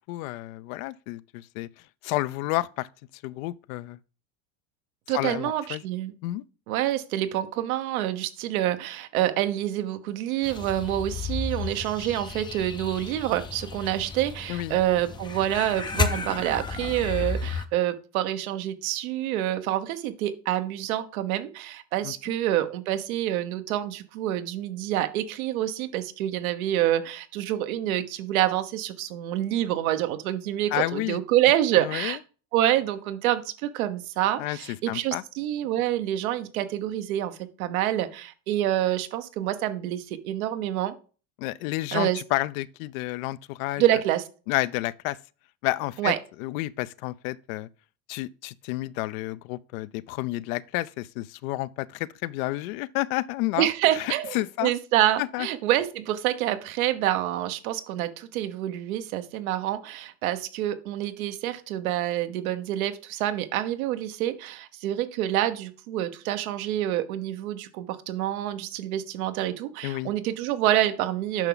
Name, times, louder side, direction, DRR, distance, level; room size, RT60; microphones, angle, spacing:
voice 1, 0.1-1.7 2.0-2.9 3.1-4.0 5.1-5.8 6.2-6.4 14.5-14.8 22.0-22.3 30.7-31.2 31.8-32.2 34.4-34.6 34.9-35.2 41.4-43.8 44.5-45.2 45.6-46.1 46.4-47.7 48.1-53.7 53.9-54.7 55.2-55.5 69.8-70.1, left 18 dB, 75° left, 0.6 m, -30 dB
voice 2, 5.1-6.1 6.7-32.2 32.5-40.9 41.9-42.2 43.8-44.2 46.0-46.2 53.6-71.5, right 13 dB, 90° right, 1.1 m, -27 dB
sound 1, 10.4-17.7, left 5 dB, 10° left, 0.4 m, -33 dB
9.0 x 5.9 x 3.9 m
supercardioid pair, 135°, 41 cm